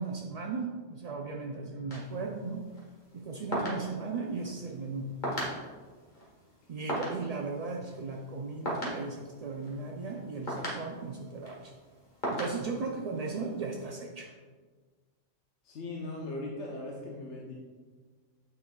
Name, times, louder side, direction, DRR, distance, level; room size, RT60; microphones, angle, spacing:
voice 1, 0.0-2.6 3.1-5.1 6.7-11.7 12.3-14.3, right 4 dB, 60° right, 0 dB, 0.4 m, -36 dB
sound 1, 1.9-13.8, equal, 40° left, 1.6 m, -40 dB
voice 2, 15.6-17.5, left 2 dB, 70° left, -3 dB, 1.2 m, -39 dB
8.6 x 5.2 x 2.3 m, 1.4 s
omnidirectional pair, 1.2 m